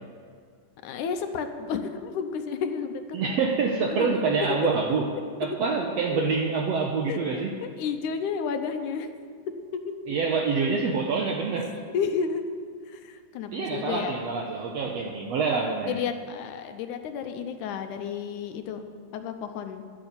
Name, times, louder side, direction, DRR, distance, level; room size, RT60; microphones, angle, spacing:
voice 1, 0.8-3.4 3.9-4.2 6.1-6.3 7.1-9.1 9.7-10.0 11.9-12.4 12.9-14.1 15.9-18.9 19.1-19.8, left 6 dB, 75° left, 7 dB, 2.2 m, -32 dB
voice 2, 3.1-5.1 5.4-7.5 10.1-11.8 13.5-16.0, right 4 dB, 65° right, 1 dB, 1.8 m, -26 dB
12.5 x 8.9 x 8.3 m, 2.1 s
omnidirectional pair, 3.7 m